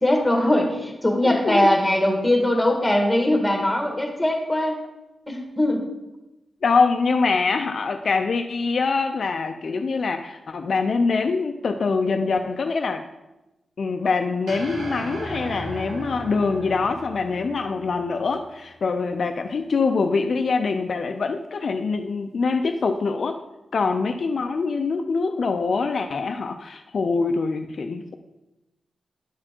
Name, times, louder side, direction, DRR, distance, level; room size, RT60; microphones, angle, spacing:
voice 1, 0.0-4.8 5.3-5.9, left 1 dB, 5° left, 1 dB, 1.5 m, -21 dB
voice 2, 1.2-1.7 6.6-13.1 13.8-23.4 23.7-28.2, left 4 dB, 60° left, 6 dB, 0.4 m, -24 dB
sound 1, 14.5-18.9, right 1 dB, 90° right, 1.2 m, -36 dB
11.0 x 4.3 x 4.4 m, 0.99 s
wide cardioid pair, 120°, 0 cm